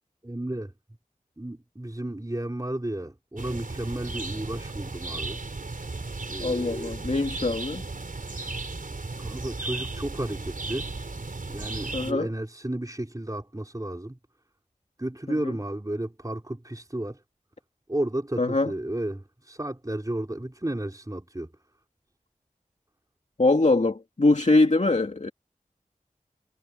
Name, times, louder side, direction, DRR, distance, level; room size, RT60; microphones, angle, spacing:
voice 1, 0.2-0.7 1.4-5.4 6.3-7.0 9.1-10.9 11.5-14.2 15.0-17.2 17.9-21.5, right 1 dB, 25° right, 4.4 m, -33 dB
sound 1, 3.4-12.1, right 3 dB, 70° right, 5.0 m, -35 dB
voice 2, 6.4-7.8 11.9-12.3 15.4-15.5 18.4-18.7 23.4-25.3, left 2 dB, 55° left, 2.3 m, -23 dB
wide cardioid pair, 40°, 14 cm